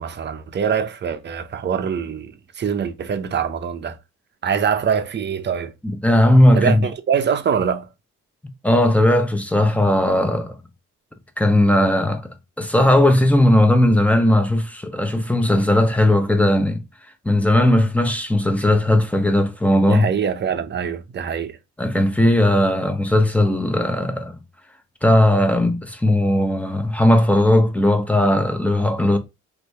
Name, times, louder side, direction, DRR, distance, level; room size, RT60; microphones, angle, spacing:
voice 1, 0.0-4.0 4.4-5.7 6.5-7.9 19.9-21.6, right 7 dB, 35° right, 0.6 m, -24 dB
voice 2, 5.8-6.9 8.6-10.6 11.4-16.8 17.2-20.1 21.8-24.4 25.0-29.2, left 1 dB, 5° left, 0.6 m, -17 dB
2.9 x 2.6 x 3.2 m
cardioid pair, 90°, 30 cm